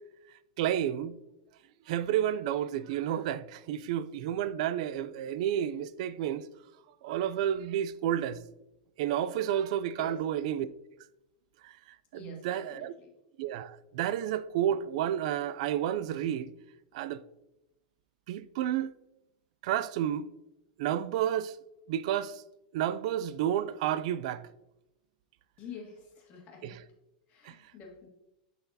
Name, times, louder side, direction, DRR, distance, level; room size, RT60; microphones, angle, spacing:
voice 1, 0.6-1.2 1.9-6.5 7.0-8.4 9.0-10.7 11.6-11.8 12.1-12.9 13.4-16.5 16.9-17.2 18.3-18.9 19.6-20.3 20.8-21.6 21.9-22.4 22.7-24.5 26.6-26.7 27.4-27.6, right 10 dB, 60° right, 0.3 m, -31 dB
voice 2, 12.1-13.1 25.6-26.8 27.3-28.1, left 4 dB, 35° left, 1.6 m, -47 dB
10.5 x 4.0 x 2.7 m
supercardioid pair, 150°, 4 cm